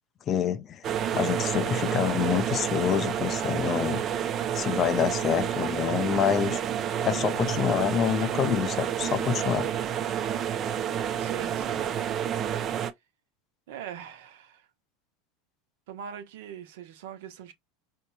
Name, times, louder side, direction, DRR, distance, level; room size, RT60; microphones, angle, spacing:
voice 1, 0.3-0.9 1.1-4.0 4.5-6.6 7.0-9.7, left 8 dB, 30° left, 0.5 m, -27 dB
sound 1, 0.8-12.9, right 9 dB, 35° right, 0.4 m, -29 dB
voice 2, 11.2-11.9 13.7-14.7 15.9-17.5, right 9 dB, 75° right, 0.9 m, -42 dB
4.2 x 2.7 x 2.2 m
supercardioid pair, 135°, 0 cm